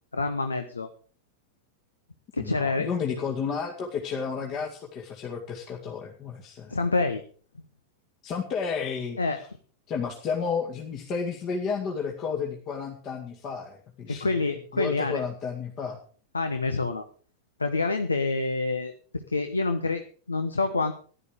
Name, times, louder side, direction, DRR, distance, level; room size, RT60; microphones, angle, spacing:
voice 1, 0.1-0.9 2.3-2.9 6.7-7.2 9.2-9.4 14.1-15.2 16.3-17.1 17.6-20.9, left 3 dB, 80° left, 8 dB, 1.0 m, -27 dB
voice 2, 2.4-6.8 8.2-9.2 9.9-14.3 14.7-16.0, left 6 dB, 35° left, 0 dB, 2.2 m, -32 dB
15.0 x 11.5 x 5.1 m, 0.43 s
figure-of-eight pair, 90°, 0 cm